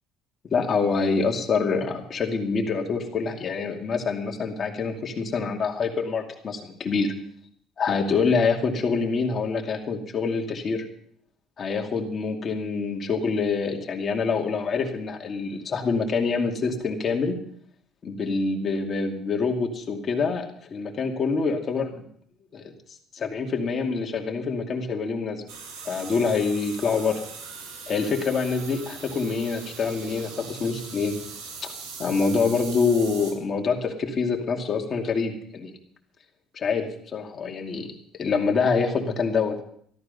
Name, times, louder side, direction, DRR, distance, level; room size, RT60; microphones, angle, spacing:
voice 1, 0.5-7.1 7.8-10.8 11.6-17.4 18.0-22.0 22.5-22.7 23.1-25.4 25.9-27.2 27.9-31.2 32.0-35.7 36.5-37.9 38.2-39.6, left 4 dB, 35° left, 2 dB, 2.4 m, -26 dB
sound 1, 25.5-33.3, right 5 dB, 90° right, 5.4 m, -40 dB
14.0 x 13.0 x 5.4 m, 0.63 s
cardioid pair, 140°, 0 cm